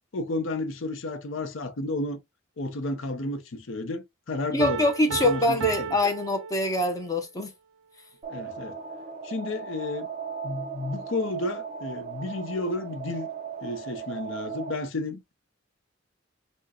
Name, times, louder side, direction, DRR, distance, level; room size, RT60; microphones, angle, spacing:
voice 1, 0.1-2.2 2.6-5.9 8.3-8.8 9.2-10.1 10.4-13.3 13.6-15.3, left 2 dB, 70° left, 0.7 m, -32 dB
voice 2, 4.5-7.5, left 1 dB, 15° left, 0.5 m, -24 dB
Piano, 4.6-7.2, right 7 dB, 85° right, 0.4 m, -35 dB
sound 1, 8.2-14.7, right 6 dB, 35° right, 0.5 m, -37 dB
4.3 x 2.1 x 2.8 m
head